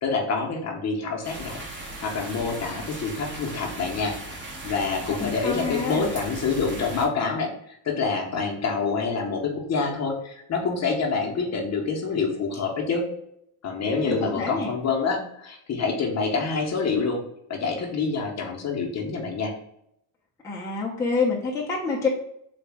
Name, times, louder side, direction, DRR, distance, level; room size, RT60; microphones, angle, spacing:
voice 1, 0.0-4.1 4.6-13.1 13.6-17.2 17.5-19.5, left 4 dB, 35° left, 0 dB, 0.8 m, -27 dB
sound 1, 1.2-7.1, right 2 dB, 25° right, 0.9 m, -38 dB
voice 2, 5.2-6.1 13.9-14.7 20.4-22.1, left 3 dB, 5° left, -4 dB, 0.6 m, -27 dB
3.9 x 2.3 x 3.4 m, 0.75 s
cardioid pair, 125°, 45 cm